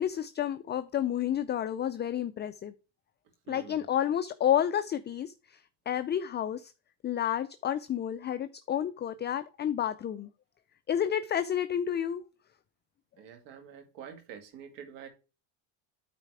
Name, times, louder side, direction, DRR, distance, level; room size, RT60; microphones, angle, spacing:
voice 1, 0.0-2.7 3.5-5.6 5.9-6.7 7.0-10.3 10.9-12.2, left 10 dB, 25° left, 0.3 m, -30 dB
voice 2, 3.5-3.9 13.2-15.1, right 8 dB, 90° right, 2.1 m, -47 dB
9.1 x 4.2 x 4.6 m
cardioid pair, 115°, 42 cm